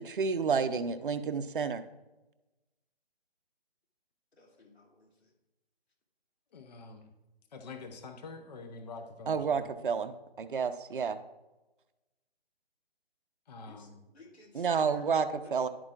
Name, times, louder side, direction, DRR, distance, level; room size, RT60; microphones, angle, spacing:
voice 1, 0.0-1.8 9.3-11.2 14.5-15.7, right 6 dB, 55° right, 11 dB, 0.7 m, -30 dB
voice 2, 4.4-5.3 13.6-15.0 15.4-15.7, left 2 dB, 85° left, 0 dB, 2.7 m, -57 dB
voice 3, 6.5-7.1 7.5-9.6 13.5-14.0, left 4 dB, 40° left, 5 dB, 0.8 m, -46 dB
11.0 x 8.6 x 2.5 m, 1.0 s
figure-of-eight pair, 155°, 31 cm